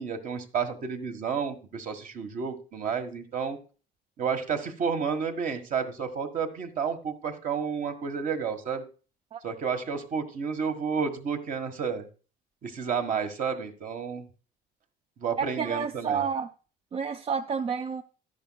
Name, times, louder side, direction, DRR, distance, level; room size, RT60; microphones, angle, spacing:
voice 1, 0.0-3.6 4.2-8.8 9.4-12.1 12.6-14.2 15.2-16.2, right 6 dB, 50° right, 7 dB, 1.5 m, -31 dB
voice 2, 15.4-16.5 16.9-18.0, right 6 dB, 35° right, 10 dB, 0.4 m, -30 dB
11.5 x 10.5 x 2.3 m, 0.36 s
cardioid pair, 130°, 18 cm